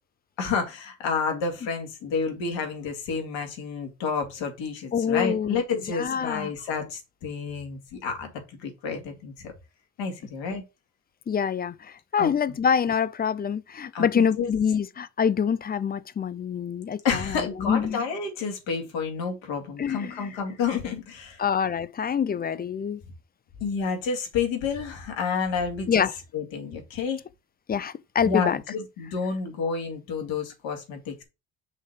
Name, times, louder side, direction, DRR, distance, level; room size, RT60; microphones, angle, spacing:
voice 1, 0.4-9.5 10.0-10.6 12.2-12.3 13.9-14.5 17.0-21.4 23.6-26.0 26.3-27.2 28.2-31.2, left 5 dB, 70° left, 2.4 m, -30 dB
voice 2, 4.9-5.6 5.9-6.5 11.3-18.0 19.8-20.3 21.4-23.0 25.9-26.1 27.7-28.6, left 7 dB, 20° left, 0.4 m, -26 dB
5.7 x 3.2 x 5.6 m
hypercardioid pair, 60°, 47 cm